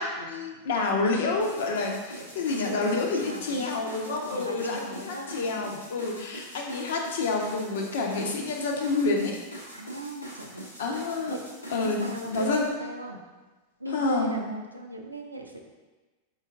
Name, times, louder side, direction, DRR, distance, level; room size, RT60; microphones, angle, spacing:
voice 1, 0.0-9.3 10.8-11.4 11.7-12.7 13.9-14.3, left 3 dB, 60° left, 1 dB, 0.7 m, -28 dB
sound 1, 1.4-12.7, equal, 85° left, 1.0 m, -44 dB
voice 2, 2.2-3.8 4.3-5.8 9.7-10.6 11.3-11.4 11.8-13.2 13.8-15.6, right 1 dB, 85° right, 2 dB, 0.5 m, -38 dB
4.7 x 4.4 x 2.4 m, 1.2 s
figure-of-eight pair, 90°, 0 cm